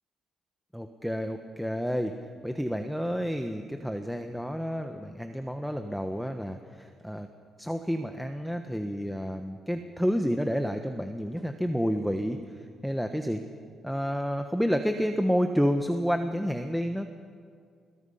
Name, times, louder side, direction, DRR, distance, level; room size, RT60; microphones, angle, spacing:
voice 1, 0.7-2.1 2.4-7.3 7.6-13.4 13.8-17.1, equal, ahead, 6 dB, 1.2 m, -30 dB
26.5 x 20.5 x 5.7 m, 2.2 s
cardioid pair, 90°, 0 cm